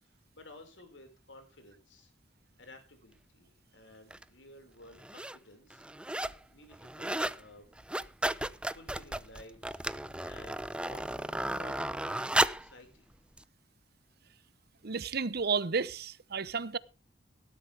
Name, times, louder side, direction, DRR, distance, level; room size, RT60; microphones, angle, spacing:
voice 1, 0.0-2.1 2.6-5.8 6.5-7.7 8.4-9.8 10.2-13.1, left 2 dB, 90° left, 5.3 m, -55 dB
sound 1, 4.1-4.2 4.9-5.4 5.7-6.4 6.7-7.4 7.7-12.7 13.4-13.5, right 1 dB, 5° right, 0.6 m, -33 dB
voice 2, 14.8-16.8, right 5 dB, 60° right, 0.9 m, -32 dB
18.0 x 12.5 x 3.5 m
head